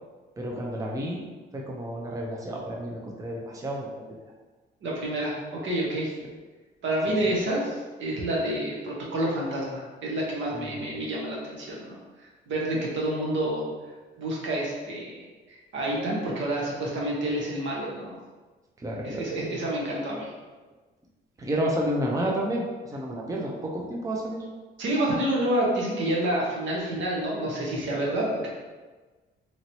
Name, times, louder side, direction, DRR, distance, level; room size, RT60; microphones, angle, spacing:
voice 1, 0.4-1.2 1.5-3.9 10.5-10.9 18.8-19.3 21.4-24.5, equal, 15° right, -2 dB, 0.5 m, -30 dB
voice 2, 4.8-6.1 6.8-12.0 12.5-13.6 14.2-18.2 19.0-20.3 24.8-28.5, right 1 dB, 70° right, -3 dB, 0.9 m, -28 dB
3.0 x 2.8 x 2.7 m, 1.3 s
cardioid pair, 90°, 20 cm